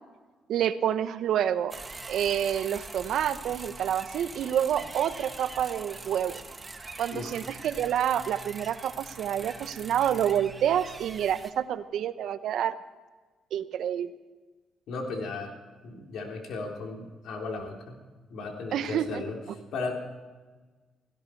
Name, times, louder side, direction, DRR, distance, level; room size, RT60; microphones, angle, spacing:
voice 1, 0.5-1.8 2.1-6.4 7.0-12.8 13.5-14.1 18.7-19.2, right 10 dB, 75° right, 13 dB, 0.8 m, -28 dB
sound 1, 1.7-11.5, right 3 dB, 25° right, 1.5 m, -43 dB
voice 2, 7.1-7.4 14.9-15.5 15.8-17.9 18.3-19.4 19.7-19.9, left 3 dB, 75° left, 1 dB, 3.6 m, -35 dB
16.5 x 16.5 x 4.6 m, 1.3 s
cardioid pair, 90°, 0 cm